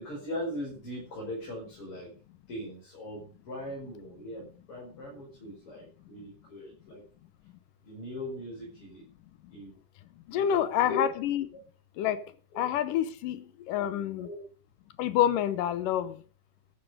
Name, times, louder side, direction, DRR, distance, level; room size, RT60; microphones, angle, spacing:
voice 1, 0.0-2.1 2.5-7.0 7.8-9.0 9.5-9.7 10.3-11.1 12.5-12.6 14.1-14.4, left 1 dB, 40° left, 6.6 m, -39 dB
voice 2, 10.3-11.5 12.0-12.2 12.6-14.3 15.0-16.2, left 10 dB, 80° left, 2.5 m, -28 dB
13.5 x 9.8 x 6.6 m
omnidirectional pair, 3.9 m